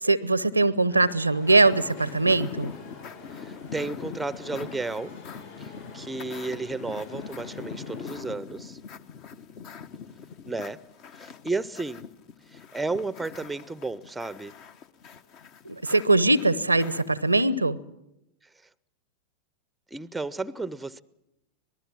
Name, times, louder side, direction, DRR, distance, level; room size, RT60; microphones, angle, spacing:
voice 1, 0.0-2.7 15.6-17.8, right 2 dB, 85° right, 0.8 m, -21 dB
sound 1, 0.9-8.2, left 3 dB, 65° left, 7.3 m, -48 dB
sound 2, 1.5-17.4, left 6 dB, 40° left, 1.2 m, -42 dB
voice 2, 3.3-5.1 5.6-8.8 10.5-10.8 11.2-12.1 12.5-14.5 19.9-21.0, right 3 dB, 5° right, 0.7 m, -33 dB
25.5 x 19.0 x 7.4 m
figure-of-eight pair, 90°, 0 cm